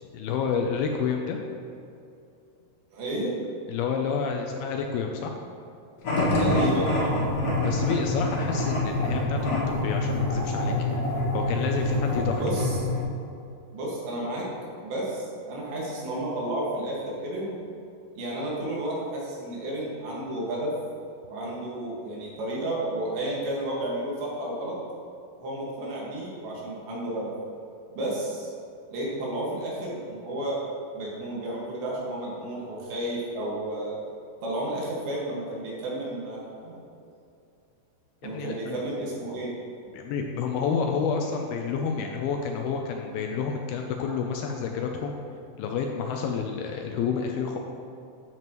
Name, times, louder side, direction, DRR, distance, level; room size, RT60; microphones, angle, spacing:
voice 1, 0.1-1.4 3.7-5.3 7.6-11.0 11.3-12.4 38.2-38.8 39.9-45.2 45.6-47.6, left 6 dB, 80° left, 2 dB, 2.3 m, -29 dB
voice 2, 2.9-3.4 6.4-7.2 12.4-12.8 13.7-14.5 14.8-17.6 18.2-20.7 21.3-24.8 25.4-27.3 27.9-28.5 28.9-30.6 30.9-34.0 34.4-36.8 38.2-39.5, right 1 dB, 85° right, -5 dB, 4.1 m, -32 dB
sound 1, 6.0-7.4, equal, 65° left, 1.7 m, -29 dB
sound 2, 6.0-13.0, left 2 dB, 50° left, 1.8 m, -26 dB
10.5 x 7.7 x 3.1 m, 2.6 s
omnidirectional pair, 4.9 m